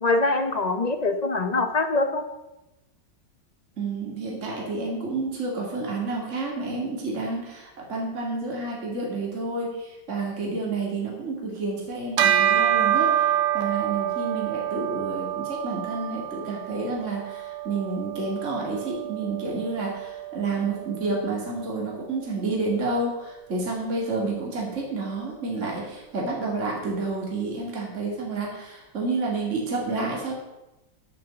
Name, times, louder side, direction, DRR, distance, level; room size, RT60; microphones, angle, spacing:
voice 1, 0.0-2.2, left 2 dB, 35° left, 7 dB, 0.7 m, -23 dB
voice 2, 3.8-30.3, right 3 dB, 40° right, -2 dB, 2.7 m, -30 dB
Bell, 12.2-21.9, right 10 dB, 75° right, 1.4 m, -27 dB
10.5 x 7.5 x 7.0 m, 0.98 s
omnidirectional pair, 1.9 m